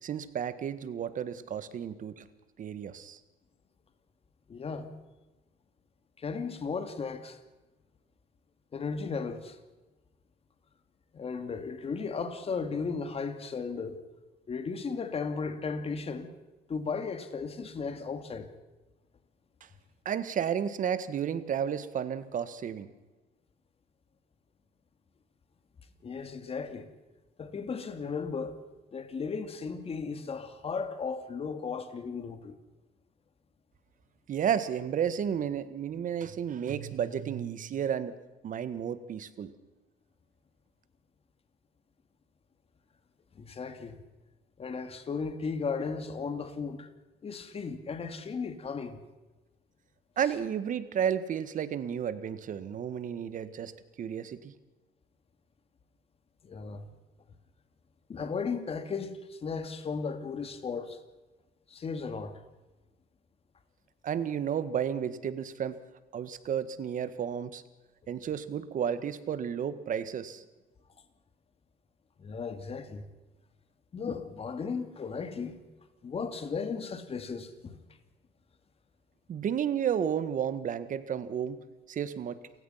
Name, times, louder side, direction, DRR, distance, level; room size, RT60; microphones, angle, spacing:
voice 1, 0.0-2.2 2.6-3.2 20.0-22.9 34.3-38.1 38.4-39.5 50.2-53.7 54.0-54.5 64.0-65.7 66.1-67.6 68.1-70.4 79.3-81.6 81.9-82.4, right 8 dB, 50° right, 1.7 m, -32 dB
voice 2, 4.5-4.9 6.2-7.4 8.7-9.6 11.1-14.0 14.5-16.3 16.7-18.5 26.0-26.9 27.4-28.6 28.9-32.6 43.3-44.0 44.6-46.9 47.2-49.0 56.4-56.9 58.1-61.0 61.7-62.4 72.2-73.0 73.9-75.6 76.0-77.8, left 5 dB, 35° left, 2.5 m, -35 dB
29.0 x 16.0 x 5.8 m
cardioid pair, 110°, 17 cm